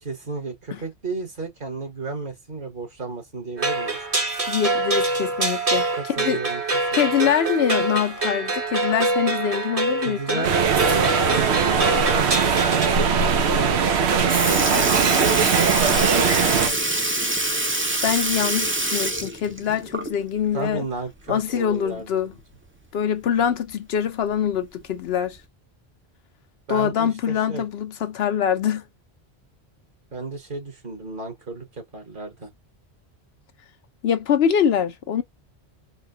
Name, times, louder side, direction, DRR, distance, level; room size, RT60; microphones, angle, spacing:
voice 1, 0.0-4.0 6.0-6.6 6.9-7.3 10.0-10.6 10.8-13.1 13.6-16.8 20.5-22.4 23.3-23.5 26.7-27.6 30.1-32.5, right 3 dB, 55° right, 1.7 m, -33 dB
sound 1, 3.6-12.9, right 2 dB, 35° right, 1.1 m, -25 dB
voice 2, 4.5-6.4 6.9-10.4 18.0-20.9 21.3-22.3 22.9-25.4 26.7-28.8 34.0-35.2, left 8 dB, 75° left, 0.9 m, -24 dB
sound 2, 10.4-16.7, right 6 dB, 85° right, 0.9 m, -20 dB
Sink (filling or washing) / Liquid, 13.9-14.0 14.3-20.4 20.7-20.8 22.4-22.5 23.4-23.5 24.3-24.6 25.4-25.5, right 2 dB, 15° right, 0.5 m, -25 dB
4.1 x 2.2 x 2.6 m
omnidirectional pair, 1.1 m